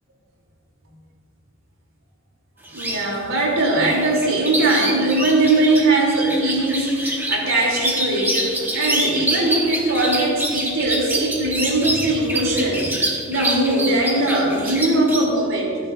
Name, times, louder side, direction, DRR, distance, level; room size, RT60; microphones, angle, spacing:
sound 1, 2.6-3.0 3.6-15.2, right 1 dB, 10° right, 2.1 m, -26 dB
voice 1, 2.7-13.0 13.3-15.8, right 2 dB, 90° right, -2 dB, 3.6 m, -20 dB
28.5 x 10.0 x 2.7 m, 2.4 s
head